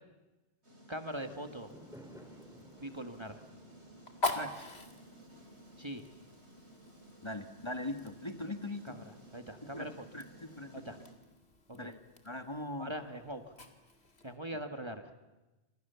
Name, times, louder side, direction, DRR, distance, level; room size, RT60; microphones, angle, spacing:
sound 1, 0.6-11.1, right 1 dB, 80° right, 5.3 m, -56 dB
voice 1, 0.9-1.7 2.8-3.4 5.8-6.0 8.9-9.0 9.3-9.9 10.7-11.0 11.7-11.9 12.8-13.5 14.2-15.1, right 1 dB, 25° right, 7 dB, 1.7 m, -41 dB
Fire, 1.1-14.4, left 2 dB, 70° left, 2.7 m, -45 dB
Fireworks, 1.2-5.7, right 1 dB, 5° right, 3.2 m, -56 dB
voice 2, 4.3-4.7 7.2-9.0 9.6-10.9 11.7-12.0 12.2-12.9, left 1 dB, 25° left, 7 dB, 1.7 m, -41 dB
29.5 x 26.5 x 7.0 m, 1.1 s
omnidirectional pair, 1.1 m